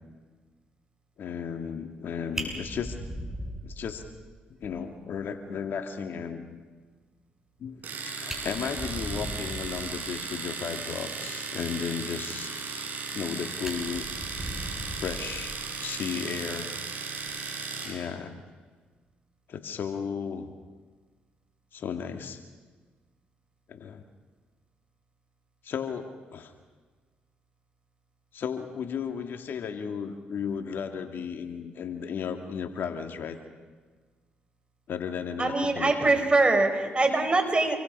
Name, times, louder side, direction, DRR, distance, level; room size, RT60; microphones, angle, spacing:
voice 1, 1.2-3.0 3.6-4.0 4.6-6.6 7.6-12.5 13.1-14.1 14.9-16.7 17.8-18.3 19.5-20.5 21.7-22.4 23.7-24.0 25.6-26.5 28.3-33.4 34.9-36.2, left 7 dB, 65° left, 6 dB, 2.4 m, -34 dB
Fire, 1.9-2.0 2.3-4.3 4.6-4.7 5.1-5.2 5.5-5.6 7.8-7.9 8.2-9.9 12.7-13.3 13.6-15.8 17.1-17.3, right 1 dB, 10° right, 7.8 m, -38 dB
Domestic sounds home sounds, 7.8-18.0, right 5 dB, 55° right, 6.6 m, -36 dB
voice 2, 35.4-37.8, right 2 dB, 30° right, 6 dB, 5.2 m, -23 dB
28.5 x 23.0 x 5.5 m, 1.4 s
supercardioid pair, 60°, 4 cm